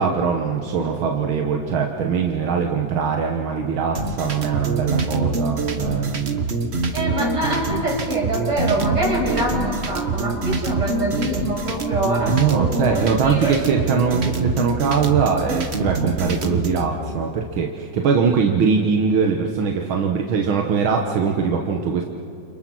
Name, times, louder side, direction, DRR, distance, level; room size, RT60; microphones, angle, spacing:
voice 1, 0.0-6.4 8.8-8.9 12.2-22.0, right 6 dB, 90° right, 2 dB, 2.1 m, -22 dB
sound 1, 3.9-16.8, right 3 dB, 35° right, 1.4 m, -25 dB
voice 2, 6.9-13.5, right 1 dB, 60° right, -3 dB, 7.9 m, -24 dB
30.0 x 29.5 x 6.3 m, 2.7 s
omnidirectional pair, 2.2 m